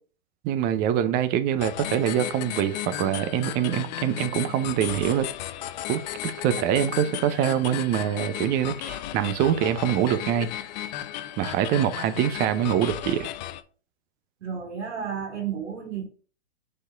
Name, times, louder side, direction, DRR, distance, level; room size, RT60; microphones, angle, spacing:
voice 1, 0.4-5.3 5.9-10.5 11.4-13.3, right 10 dB, 25° right, 0.6 m, -24 dB
sound 1, 1.6-13.6, left 13 dB, 40° left, 0.5 m, -35 dB
voice 2, 14.4-16.1, right 7 dB, 90° right, 2.1 m, -32 dB
4.9 x 4.4 x 4.4 m
hypercardioid pair, 130°, 34 cm